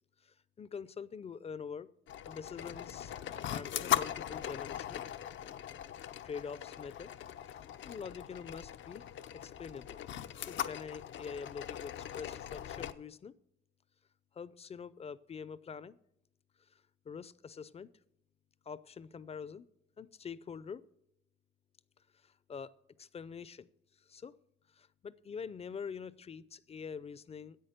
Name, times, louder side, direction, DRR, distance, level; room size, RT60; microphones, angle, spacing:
voice 1, 0.2-1.9 2.3-3.1 3.5-5.0 6.2-7.1 7.4-9.0 9.3-10.0 10.4-13.3 14.3-16.0 17.0-17.9 18.7-19.7 20.0-20.8 22.2-22.7 23.0-23.7 24.1-24.4 24.7-27.6, left 6 dB, 30° left, 18 dB, 0.5 m, -45 dB
sound 1, 2.1-12.9, left 10 dB, 70° left, 0.6 m, -40 dB
10.5 x 8.2 x 6.6 m, 0.78 s
cardioid pair, 90°, 20 cm